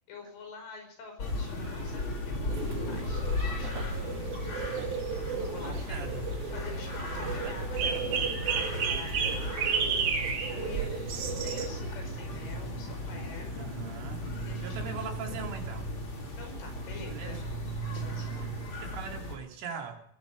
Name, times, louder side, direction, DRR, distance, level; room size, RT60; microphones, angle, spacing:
voice 1, 0.1-4.6 5.0-6.2 6.5-13.7 14.4-15.0 15.3-15.4 16.4-17.4 17.9-18.5, left 4 dB, 85° left, 4 dB, 7.8 m, -47 dB
sound 1, 1.2-19.4, left 1 dB, 30° left, 3.4 m, -36 dB
sound 2, 2.5-11.7, right 6 dB, 55° right, 3.7 m, -33 dB
voice 2, 5.6-6.3 7.2-7.6 13.6-14.3 14.6-15.9 17.1-17.4 18.8-20.0, right 5 dB, 85° right, 2 dB, 5.4 m, -41 dB
21.0 x 13.5 x 5.2 m, 0.71 s
omnidirectional pair, 5.5 m